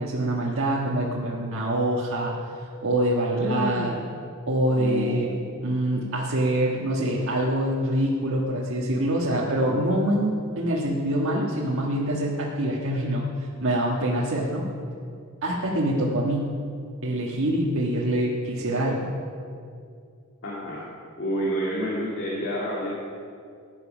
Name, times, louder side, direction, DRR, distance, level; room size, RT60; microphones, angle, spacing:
voice 1, 0.0-2.4 2.8-4.0 4.5-14.7 15.4-16.5 17.0-19.1, right 1 dB, 65° right, -5 dB, 1.5 m, -25 dB
voice 2, 3.4-4.0 4.7-5.5 20.4-20.9 21.2-23.0, equal, 60° left, -5 dB, 2.2 m, -29 dB
15.0 x 9.6 x 6.1 m, 2.3 s
head